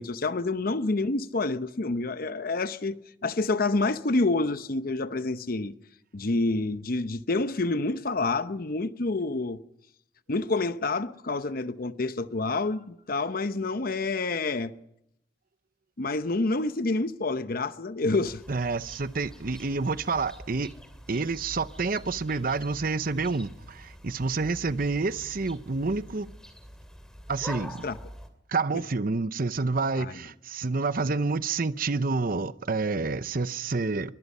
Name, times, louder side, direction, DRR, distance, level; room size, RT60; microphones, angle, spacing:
voice 1, 0.0-5.7 6.1-9.6 10.3-14.7 16.0-18.4 27.8-28.0 30.0-30.1, left 3 dB, 50° left, 0.8 m, -28 dB
sound 1, 18.2-28.3, equal, 5° left, 2.6 m, -45 dB
voice 2, 18.5-20.7 21.1-26.3 27.3-27.8 28.5-34.1, right 3 dB, 50° right, 0.8 m, -28 dB
23.0 x 22.5 x 5.5 m
head